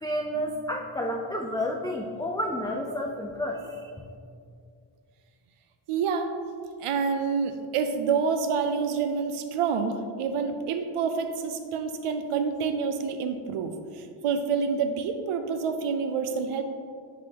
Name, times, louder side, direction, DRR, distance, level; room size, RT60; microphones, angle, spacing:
voice 1, 0.0-3.8, equal, 10° left, 0 dB, 0.4 m, -30 dB
voice 2, 5.9-6.3 6.8-16.6, right 5 dB, 85° right, 7 dB, 0.5 m, -28 dB
10.0 x 4.1 x 2.8 m, 2.3 s
wide cardioid pair, 90°, 50 cm